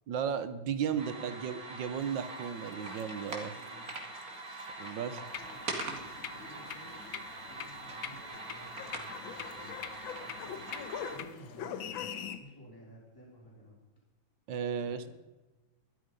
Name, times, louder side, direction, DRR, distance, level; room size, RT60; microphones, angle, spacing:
voice 1, 0.1-3.5 4.8-5.2 14.5-15.1, right 7 dB, 70° right, 13 dB, 1.5 m, -35 dB
voice 2, 0.9-1.5 3.5-3.9 4.9-7.1 7.5-12.1 12.4-13.8 14.8-15.1, equal, 10° left, -4 dB, 3.5 m, -54 dB
sound 1, 1.0-11.2, right 3 dB, 45° right, 2.6 m, -43 dB
sound 2, 2.0-12.4, left 8 dB, 75° left, 1.7 m, -46 dB
sound 3, 5.3-11.3, left 9 dB, 60° left, 1.0 m, -46 dB
12.5 x 12.5 x 5.2 m, 1.1 s
omnidirectional pair, 2.1 m